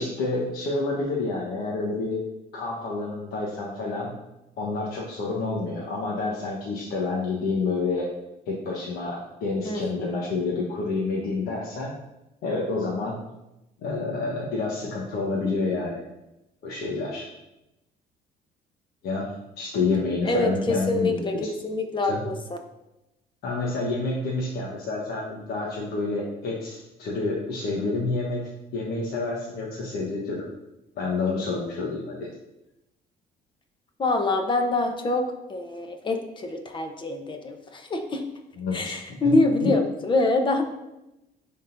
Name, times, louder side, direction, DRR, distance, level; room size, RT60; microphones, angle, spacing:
voice 1, 0.0-2.2 2.5-4.1 4.6-8.1 8.5-11.9 12.4-13.2 13.8-16.0 16.6-17.3 19.0-21.2 22.1-22.2 23.4-30.5 31.0-32.3 38.6-39.7, left 3 dB, 70° left, -4 dB, 1.1 m, -28 dB
voice 2, 9.6-10.3 20.2-22.6 34.0-38.2 38.7-40.6, left 2 dB, 30° left, 5 dB, 0.9 m, -25 dB
9.9 x 3.8 x 2.6 m, 0.94 s
cardioid pair, 110°, 17 cm